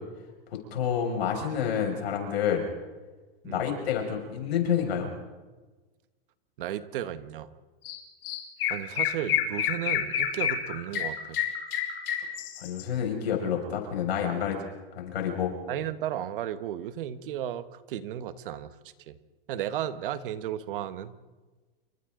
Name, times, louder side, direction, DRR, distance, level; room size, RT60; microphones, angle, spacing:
voice 1, 0.5-2.7 3.4-5.1 12.6-14.6 14.9-15.5, left 8 dB, 90° left, 2 dB, 6.2 m, -28 dB
voice 2, 6.6-7.5 8.7-11.4 15.7-18.7 19.1-19.2 19.5-21.1, right 11 dB, 60° right, 12 dB, 1.4 m, -34 dB
Chirp tweet, 7.8-8.0 8.2-12.8, left 9 dB, 70° left, 4.1 m, -28 dB
28.5 x 26.0 x 3.9 m, 1.3 s
supercardioid pair, 155°, 30 cm